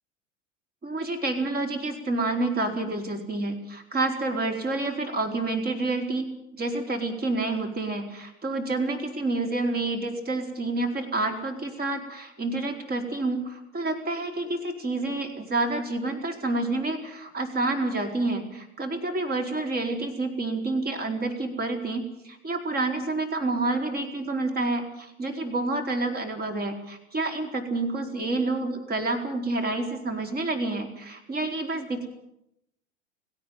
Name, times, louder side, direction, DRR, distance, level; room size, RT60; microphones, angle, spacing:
voice 1, 0.8-6.3 6.6-32.1, right 2 dB, 25° right, 5 dB, 4.4 m, -28 dB
17.5 x 17.0 x 9.5 m, 0.81 s
hypercardioid pair, 90°, 37 cm